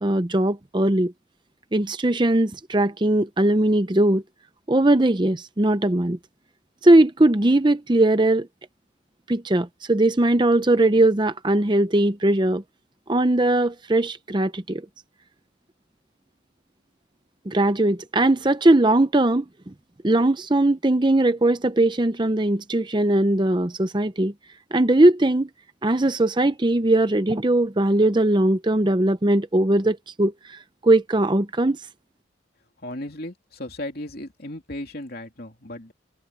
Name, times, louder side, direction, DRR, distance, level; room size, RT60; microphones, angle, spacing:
voice 1, 0.0-1.1 1.7-4.2 4.7-6.2 6.8-8.5 9.3-12.6 13.1-14.8 17.5-19.5 20.0-24.3 24.7-25.5 25.8-31.8, right 1 dB, 25° right, 0.7 m, -20 dB
voice 2, 32.8-35.9, left 1 dB, 50° left, 3.0 m, -35 dB
head